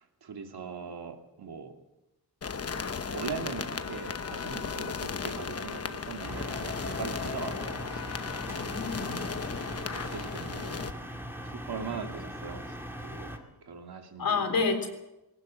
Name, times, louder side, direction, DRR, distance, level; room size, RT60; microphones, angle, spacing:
voice 1, 0.0-1.8 3.0-8.0 9.0-9.4 9.9-10.8 11.4-14.5, right 6 dB, 80° right, 4 dB, 2.6 m, -41 dB
sound 1, 2.4-10.9, left 5 dB, 40° left, 1.0 m, -35 dB
sound 2, 6.2-13.4, equal, 5° right, 2.3 m, -40 dB
voice 2, 8.4-9.2 14.2-14.9, left 4 dB, 65° left, 5 dB, 3.7 m, -29 dB
20.0 x 19.0 x 7.6 m, 0.95 s
wide cardioid pair, 175°, 38 cm